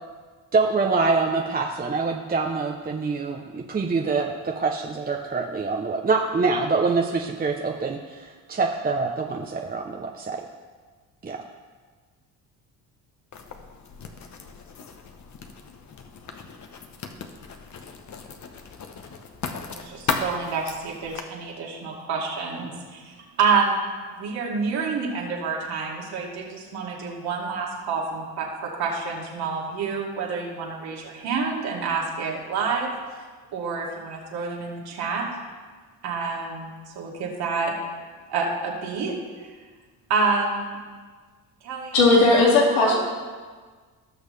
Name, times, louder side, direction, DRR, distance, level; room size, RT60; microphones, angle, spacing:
voice 1, 0.5-10.4 11.2-11.4, right 4 dB, 25° right, 2 dB, 0.8 m, -25 dB
Writing, 13.3-21.2, left 5 dB, 45° left, 1.1 m, -36 dB
voice 2, 19.6-32.9 33.5-35.3 36.0-37.7 38.3-39.1 39.4-39.5 40.1-40.8 41.6-42.4 42.8-43.0, right 4 dB, 75° right, -3 dB, 2.5 m, -28 dB
voice 3, 41.9-43.0, left 3 dB, 90° left, -3 dB, 2.3 m, -17 dB
18.0 x 6.4 x 3.3 m, 1.5 s
cardioid pair, 85°, 39 cm